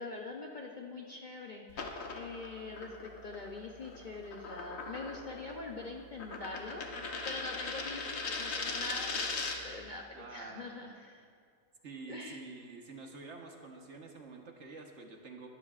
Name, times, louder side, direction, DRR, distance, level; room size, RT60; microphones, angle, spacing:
voice 1, 0.0-9.2 9.6-10.0 10.3-11.2 12.1-12.4, left 3 dB, 40° left, 0 dB, 0.7 m, -44 dB
sound 1, 1.7-9.8, left 3 dB, 70° left, 1.5 m, -40 dB
voice 2, 10.1-10.7 11.8-15.5, right 3 dB, 55° right, 2 dB, 1.4 m, -48 dB
20.5 x 13.0 x 2.5 m, 2.1 s
omnidirectional pair, 1.5 m